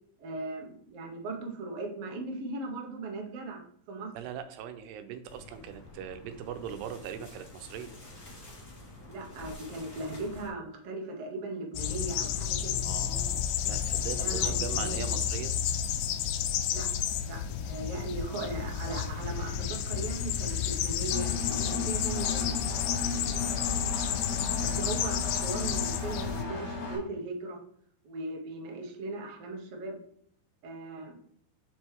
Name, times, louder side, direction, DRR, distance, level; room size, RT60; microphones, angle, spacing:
voice 1, 0.2-3.6 3.9-4.1 9.1-12.8 14.1-15.0 16.7-16.9 17.2-22.6 24.6-27.6 28.0-30.0 30.6-31.1, right 2 dB, 65° right, 0 dB, 1.5 m, -38 dB
voice 2, 4.1-7.9 12.8-15.5 23.0-23.3, right 8 dB, 85° right, 9 dB, 2.7 m, -40 dB
sound 1, 5.3-10.5, left 2 dB, 35° left, 1.6 m, -48 dB
sound 2, 11.7-26.4, left 9 dB, 80° left, 2.3 m, -31 dB
Engine, 21.1-27.0, left 3 dB, 55° left, 3.0 m, -36 dB
7.5 x 6.2 x 3.4 m, 0.65 s
omnidirectional pair, 4.7 m